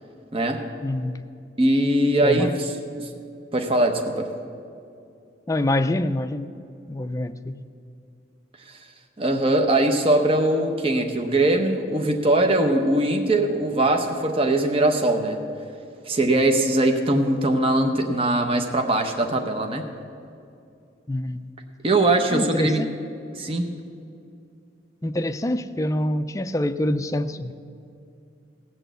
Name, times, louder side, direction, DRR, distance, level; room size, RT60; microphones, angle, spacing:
voice 1, 0.3-0.6 1.6-2.7 3.0-3.1 3.5-4.3 8.6-8.8 9.2-15.4 16.0-19.9 21.8-22.9 23.3-23.7, right 1 dB, 30° right, 4 dB, 0.8 m, -21 dB
voice 2, 0.8-1.2 2.2-2.5 5.5-6.5 6.9-7.6 21.1-21.5 22.3-22.9 25.0-27.5, left 1 dB, 15° left, 9 dB, 0.4 m, -25 dB
17.0 x 6.2 x 8.0 m, 2.5 s
head